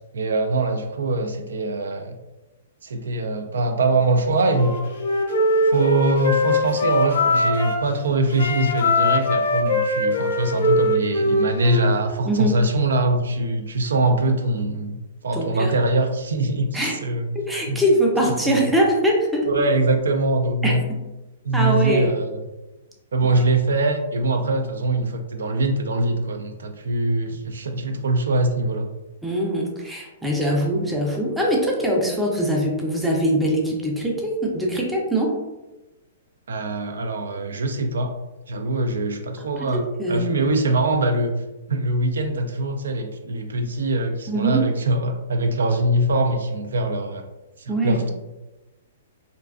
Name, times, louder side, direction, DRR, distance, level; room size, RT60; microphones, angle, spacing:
voice 1, 0.1-2.2 2.8-4.7 5.7-15.0 15.2-17.3 17.7-17.8 18.4-18.7 19.5-20.8 21.4-22.4 23.1-28.9 36.5-38.1 38.5-39.8 40.1-41.3 41.7-47.2 47.6-48.1, right 2 dB, 85° right, 5 dB, 0.3 m, -23 dB
Wind instrument woodwind instrument, 4.5-7.9 8.3-12.0, left 1 dB, 70° left, 0.5 m, -21 dB
voice 2, 12.3-12.6 15.3-15.7 16.7-16.9 17.5-19.5 20.6-21.0 21.5-22.1 29.2-35.3 39.4-40.3 44.3-44.7 47.7-48.0, right 1 dB, 5° right, -2 dB, 0.4 m, -22 dB
2.4 x 2.2 x 2.3 m, 1.0 s
hypercardioid pair, 145°, 0 cm